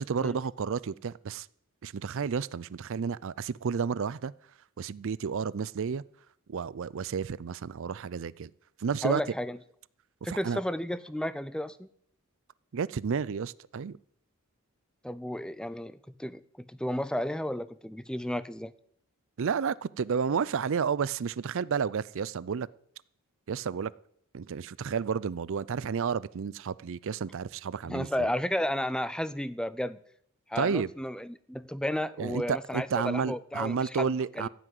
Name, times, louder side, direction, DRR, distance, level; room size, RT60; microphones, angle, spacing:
voice 1, 0.0-1.5 1.8-4.3 4.8-6.0 6.5-8.5 8.8-9.2 10.3-10.6 12.7-14.0 19.4-22.7 23.5-23.9 24.3-28.3 30.6-30.9 32.2-34.5, right 6 dB, 60° right, 0.4 m, -31 dB
voice 2, 9.0-9.6 10.2-11.9 15.0-18.7 27.9-30.0 30.5-34.5, left 1 dB, 5° left, 0.5 m, -33 dB
15.0 x 6.1 x 9.3 m
head